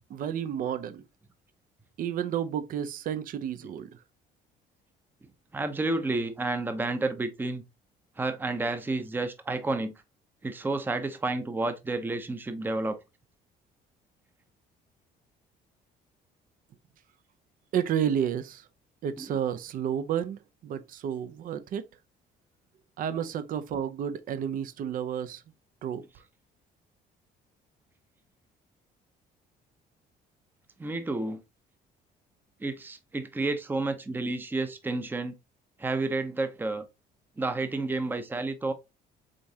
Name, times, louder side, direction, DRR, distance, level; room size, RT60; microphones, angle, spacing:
voice 1, 0.1-1.0 2.0-4.0 17.7-18.7 19.0-21.9 23.0-25.4 25.8-26.0, right 9 dB, 55° right, 0.6 m, -31 dB
voice 2, 5.5-7.6 8.2-9.9 10.4-13.0 19.2-19.3 30.8-31.4 32.6-35.3 35.8-36.8 37.4-38.7, right 2 dB, 10° right, 0.6 m, -30 dB
5.1 x 3.5 x 2.7 m
cardioid pair, 110°, 17 cm